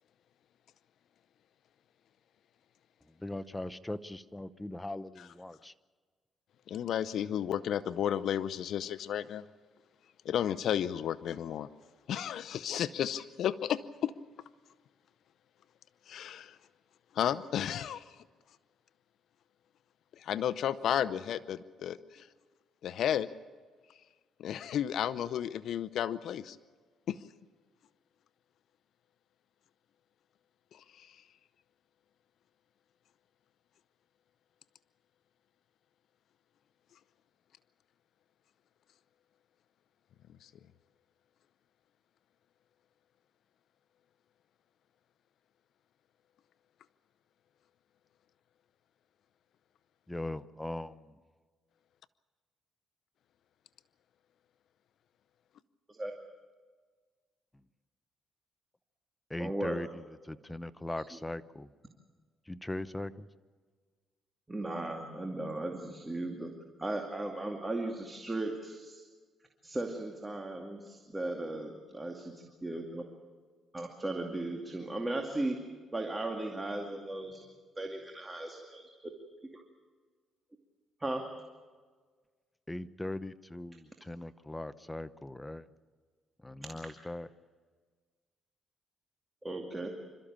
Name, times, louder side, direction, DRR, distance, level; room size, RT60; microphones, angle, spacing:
voice 1, 3.2-5.7 50.1-51.1 59.3-59.9 60.3-61.7 62.5-63.3 82.7-85.7 86.4-87.3, left 1 dB, 10° left, 14 dB, 0.8 m, -40 dB
voice 2, 6.7-9.4 10.2-11.7 12.1-14.1 16.1-16.6 17.1-18.2 20.2-22.3 22.8-23.3 24.4-26.6 27.1-27.2 30.7-31.2 40.4-40.5, left 10 dB, 70° left, 16 dB, 0.7 m, -33 dB
voice 3, 59.4-59.8 61.1-61.2 64.5-66.5 66.8-69.0 69.6-72.3 72.6-73.0 73.7-75.6 75.9-77.4 77.8-78.8 79.5-79.6 81.0-81.2 89.4-89.9, right 2 dB, 15° right, 2 dB, 2.4 m, -36 dB
27.0 x 13.5 x 8.8 m, 1.5 s
cardioid pair, 90°, 0 cm